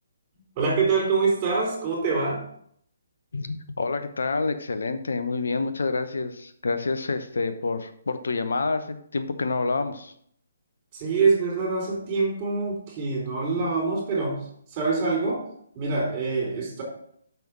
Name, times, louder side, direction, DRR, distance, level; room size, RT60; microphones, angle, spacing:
voice 1, 0.6-2.4 10.9-14.4 14.7-15.4 15.8-16.8, right 4 dB, 30° right, -3 dB, 3.7 m, -25 dB
voice 2, 3.3-10.1, left 3 dB, 75° left, 8 dB, 1.0 m, -28 dB
5.9 x 5.4 x 6.0 m, 0.67 s
hypercardioid pair, 150°, 0 cm